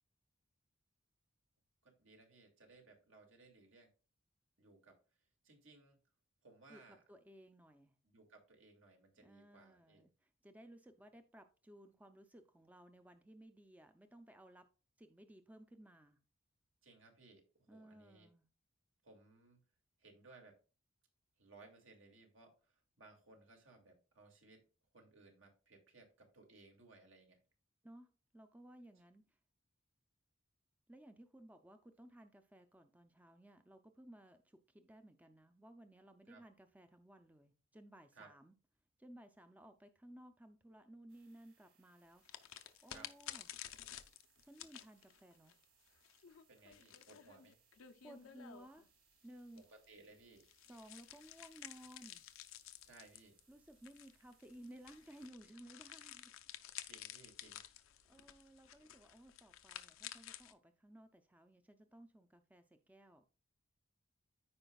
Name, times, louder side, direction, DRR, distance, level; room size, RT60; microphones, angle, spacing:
voice 1, 1.8-3.9 4.6-5.0 5.4-6.0 6.4-7.0 8.0-10.0 16.8-18.3 19.0-19.6 20.0-20.6 21.4-24.6 24.9-27.4 36.3-36.4 38.1-38.3 42.9-43.1 46.5-47.6 49.6-50.5 52.8-53.4 56.9-57.6, right 3 dB, 70° right, 2 dB, 2.2 m, -62 dB
voice 2, 7.1-8.0 9.2-14.7 15.0-16.2 17.7-18.5 27.8-29.4 30.9-38.5 39.0-42.4 42.8-43.5 44.4-45.6 48.0-48.9 49.2-49.7 50.6-52.2 53.5-56.3 58.1-63.2, right 1 dB, 10° right, 8 dB, 0.5 m, -58 dB
sound 1, 41.1-55.3, right 6 dB, 90° right, 3.0 m, -75 dB
sound 2, 42.2-48.9 49.5-60.5, left 11 dB, 90° left, 0.7 m, -53 dB
14.0 x 4.9 x 2.3 m, 0.34 s
head